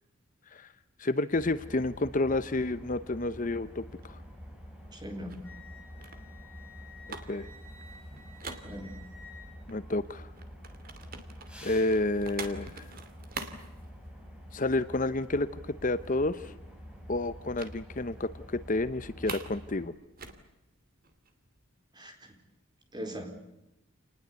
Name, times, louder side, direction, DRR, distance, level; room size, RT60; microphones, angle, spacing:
voice 1, 1.0-4.2 7.3-7.5 9.7-10.3 11.6-12.9 14.5-16.5 17.1-19.9, left 2 dB, 40° left, 12 dB, 0.8 m, -30 dB
sound 1, 1.3-19.9, equal, 5° right, 4.8 m, -47 dB
sound 2, 3.5-9.3 9.7-14.6 14.9-15.1 15.4-15.5 15.8-16.6 17.6-17.8 18.1-18.3 18.6-19.6 19.9-21.6, right 4 dB, 45° right, 2.6 m, -45 dB
voice 2, 4.9-5.3 8.1-8.2 8.6-9.0 21.9-22.3 22.9-23.3, equal, 20° right, 5 dB, 4.2 m, -40 dB
Wind instrument woodwind instrument, 5.4-10.0, left 3 dB, 10° left, 7.3 m, -53 dB
28.5 x 20.0 x 8.3 m, 0.95 s
head